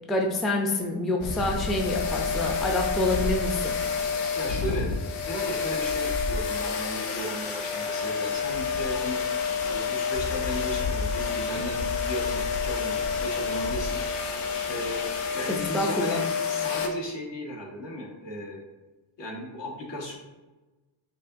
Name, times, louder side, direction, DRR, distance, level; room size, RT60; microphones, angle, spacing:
voice 1, 0.1-3.8 15.5-16.2, left 1 dB, ahead, 0 dB, 0.3 m, -27 dB
sound 1, 1.2-16.9, left 5 dB, 85° left, 0.7 m, -29 dB
voice 2, 4.3-4.9 5.3-9.2 9.6-14.0 14.6-15.1 15.3-16.2 16.5-18.6 19.2-20.2, equal, 60° left, -2 dB, 1.2 m, -36 dB
5.2 x 2.8 x 2.6 m, 1.1 s
cardioid pair, 90°, 49 cm